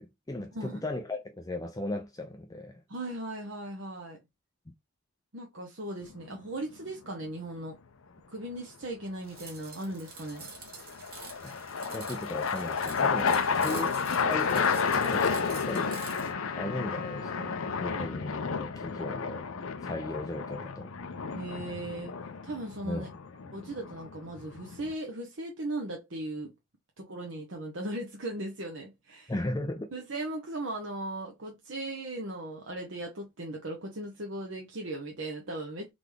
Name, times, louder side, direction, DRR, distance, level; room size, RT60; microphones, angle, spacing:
voice 1, 0.0-2.8 11.4-11.6 11.9-13.9 14.3-16.0 16.6-19.5 19.8-20.9 22.8-23.1 29.3-29.9, left 1 dB, 15° left, 0.4 m, -36 dB
voice 2, 2.9-4.2 5.3-7.8 8.3-10.5 13.5-13.8 21.3-22.1 22.4-23.1 23.5-26.5 27.0-29.3 29.9-35.9, right 1 dB, 55° right, 0.9 m, -38 dB
sound 1, 6.0-6.5 10.3-24.9, left 5 dB, 70° left, 0.6 m, -32 dB
sound 2, 9.2-16.3, right 5 dB, 40° right, 1.4 m, -47 dB
Trumpet, 14.4-18.1, left 5 dB, 40° left, 0.8 m, -41 dB
3.9 x 3.4 x 3.3 m
head